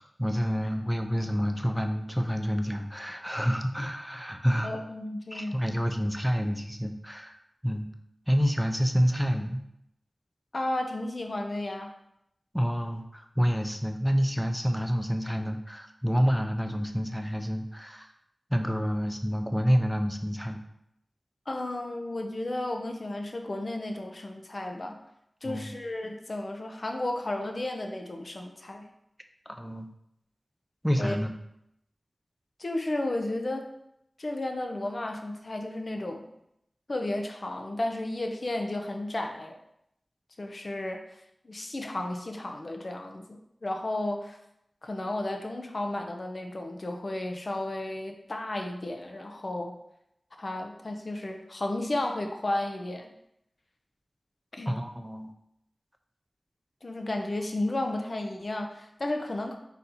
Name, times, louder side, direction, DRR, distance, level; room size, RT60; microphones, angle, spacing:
voice 1, 0.2-4.7 5.3-7.4 7.6-7.9 8.3-9.6 12.5-18.1 18.5-20.6 25.4-25.7 29.5-29.9 30.8-31.3 54.7-55.3, equal, ahead, 5 dB, 0.5 m, -28 dB
voice 2, 4.6-5.6 10.5-11.9 21.5-25.0 25.4-28.9 31.0-31.2 32.6-33.7 34.2-36.2 36.9-39.6 40.4-41.0 41.4-44.4 44.8-49.8 50.4-53.1 54.5-54.7 56.8-59.5, left 1 dB, 55° left, 3 dB, 0.6 m, -33 dB
4.1 x 2.7 x 4.1 m, 0.79 s
wide cardioid pair, 50°, 0 cm